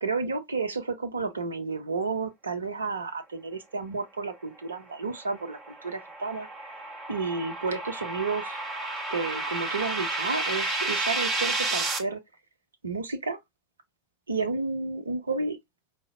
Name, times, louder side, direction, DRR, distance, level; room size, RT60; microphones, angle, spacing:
voice 1, 0.0-6.7 7.1-8.6 9.1-12.2 12.8-13.4 14.3-15.6, right 4 dB, 75° right, 0.6 m, -31 dB
sound 1, 5.2-12.0, right 2 dB, 25° right, 1.0 m, -31 dB
4.9 x 2.0 x 2.5 m
figure-of-eight pair, 80°, 0 cm